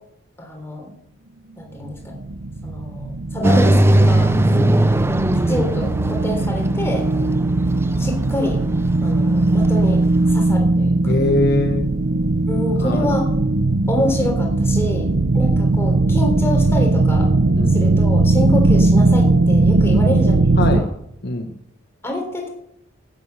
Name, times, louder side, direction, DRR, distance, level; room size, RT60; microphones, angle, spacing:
voice 1, 0.4-0.9 1.6-2.2 2.6-4.3 5.5-7.1 8.0-8.6 9.0-10.0 10.3-11.1 12.4-13.3 13.9-15.1 15.3-17.3 17.7-20.4 20.7-20.8 22.0-22.5, left 1 dB, 10° left, 1 dB, 3.5 m, -26 dB
sound 1, 1.8-20.8, right 2 dB, 75° right, 0.9 m, -18 dB
sound 2, 3.4-10.3, right 1 dB, 10° right, 0.5 m, -20 dB
voice 2, 11.1-11.9 12.8-13.1 15.0-15.1 17.5-17.8 19.9-20.1 20.6-20.9 21.2-21.6, left 2 dB, 50° left, 5 dB, 1.1 m, -22 dB
12.5 x 9.5 x 8.1 m, 0.78 s
head